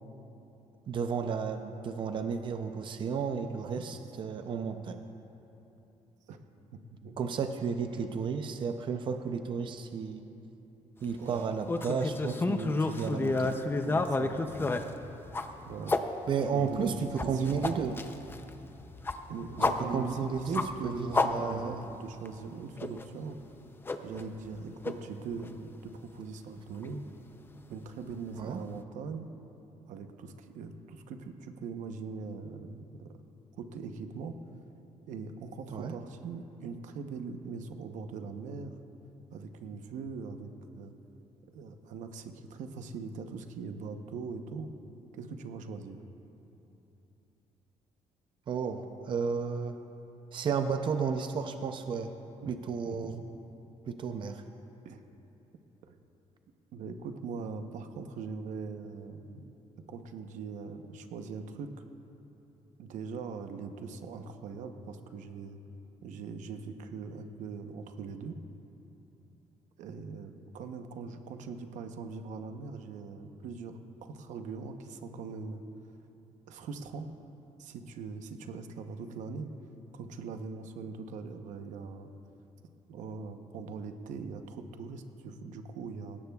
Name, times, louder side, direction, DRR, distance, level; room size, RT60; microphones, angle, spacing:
voice 1, 0.9-5.0 7.2-10.3 11.0-13.5 16.3-18.0 19.6-21.8 28.4-28.6 35.7-35.9 48.5-49.8 50.3-52.1 52.5-53.2 53.9-54.4, right 6 dB, 40° right, 7 dB, 0.5 m, -33 dB
voice 2, 11.2-11.5 13.8-14.9 15.6-15.9 16.5-17.0 17.2-17.7 19.3-20.2 20.5-23.4 24.0-27.0 27.7-29.3 29.9-32.9 33.6-34.4 35.1-38.8 39.3-40.9 41.5-44.7 45.1-46.0 52.4-52.5 52.9-53.3 54.8-55.0 55.8-56.0 56.7-59.5 59.9-61.7 62.8-65.6 66.0-68.4 69.8-75.6 76.5-77.1 77.6-79.5 79.9-82.1 82.9-86.2, right 5 dB, 85° right, 6 dB, 0.9 m, -41 dB
sound 1, 11.7-16.0 16.6-21.9 22.3-22.4 22.8-23.0 23.9-24.6 24.8-24.9 25.4-25.5 26.8-26.9, left 3 dB, 15° left, 0.5 m, -31 dB
20.0 x 17.0 x 2.4 m, 3.0 s
cardioid pair, 150°, 12 cm